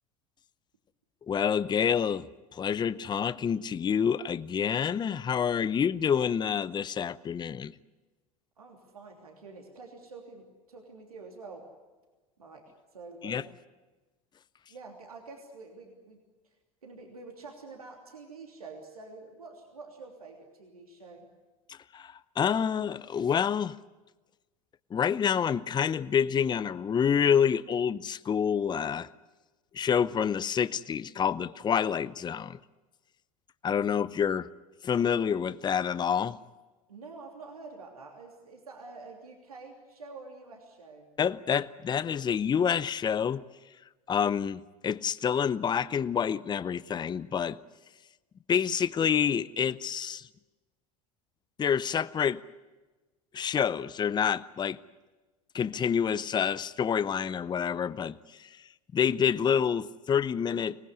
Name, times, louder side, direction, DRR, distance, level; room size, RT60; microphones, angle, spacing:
voice 1, 1.3-2.3 2.5-7.7 13.2-13.4 21.7-23.8 24.9-29.1 29.7-32.6 33.6-34.5 34.8-36.4 41.2-43.4 44.1-47.6 48.5-50.3 51.6-52.4 53.3-54.8 55.5-58.5 58.9-60.8, left 7 dB, 25° left, 0.7 m, -28 dB
voice 2, 8.6-11.7 12.4-13.5 14.7-16.2 16.8-21.3 36.9-41.1, right 3 dB, 90° right, 3.1 m, -47 dB
25.0 x 19.0 x 9.7 m
hypercardioid pair, 80°, 18 cm